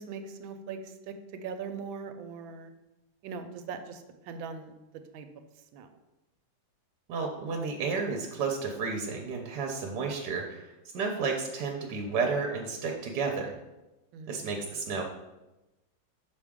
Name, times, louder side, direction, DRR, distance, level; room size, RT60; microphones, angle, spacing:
voice 1, 0.0-2.7 3.2-4.7 5.1-5.3 5.7-5.9 14.1-14.4 14.9-15.0, right 5 dB, 85° right, 8 dB, 1.4 m, -40 dB
voice 2, 7.1-10.7 10.9-13.5 14.3-15.0, right 4 dB, 65° right, 2 dB, 1.2 m, -32 dB
6.2 x 4.8 x 3.6 m, 1.0 s
omnidirectional pair, 2.1 m